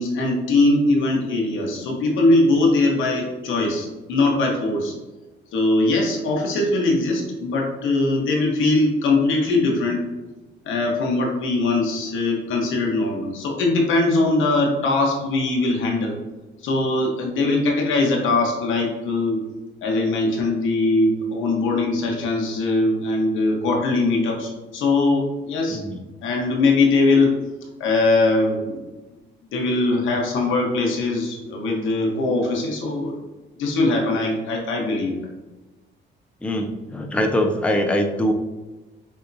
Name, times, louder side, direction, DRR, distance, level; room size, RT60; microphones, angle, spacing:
voice 1, 0.0-4.9 5.5-10.0 10.6-16.2 16.6-19.4 19.8-25.8 26.2-27.3 27.8-28.8 29.5-33.2 33.6-35.1, left 2 dB, 80° left, 0 dB, 1.1 m, -21 dB
voice 2, 25.7-26.0 36.4-38.3, left 1 dB, 5° left, 3 dB, 0.5 m, -23 dB
6.3 x 2.8 x 2.7 m, 1.2 s
cardioid pair, 90°, 20 cm